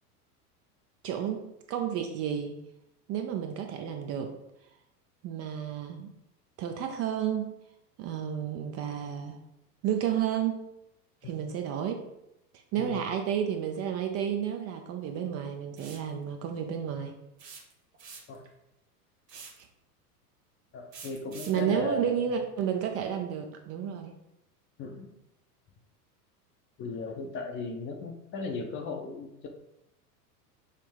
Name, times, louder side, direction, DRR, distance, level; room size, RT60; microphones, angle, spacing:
voice 1, 1.0-2.6 3.1-4.3 5.2-6.1 6.6-7.5 8.0-9.4 9.8-10.6 11.2-12.1 12.7-17.1 19.3-19.5 21.5-24.1, right 9 dB, 35° right, 4 dB, 0.5 m, -31 dB
sound 1, 15.8-16.1 17.4-18.5 19.3-19.7 20.9-21.6, right 5 dB, 90° right, 1.1 m, -46 dB
voice 2, 20.7-22.1 24.8-25.1 26.8-29.5, left 4 dB, 25° left, 4 dB, 0.6 m, -37 dB
5.7 x 2.0 x 4.6 m, 0.84 s
hypercardioid pair, 100°, 47 cm